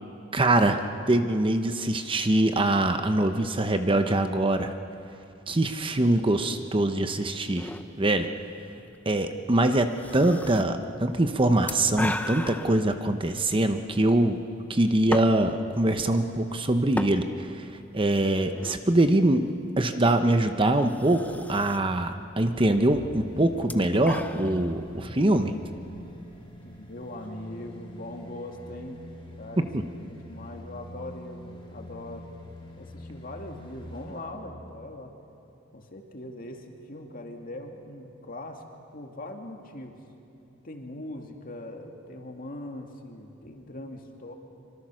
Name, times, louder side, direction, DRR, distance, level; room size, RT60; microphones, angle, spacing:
voice 1, 0.3-4.7 5.5-7.7 8.0-8.3 9.1-14.4 14.7-17.7 17.9-19.5 19.8-25.5, right 1 dB, 25° right, 7 dB, 0.9 m, -23 dB
sound 1, 7.6-27.3, left 1 dB, 10° left, 0.7 m, -40 dB
sound 2, 22.7-34.3 34.7-34.8, equal, 25° left, 3.9 m, -45 dB
voice 2, 26.6-29.0 29.4-32.3 32.8-35.2 35.7-38.6 38.9-39.9 40.6-44.3, left 1 dB, 45° left, 2 dB, 2.3 m, -41 dB
25.0 x 24.5 x 6.3 m, 2.8 s
head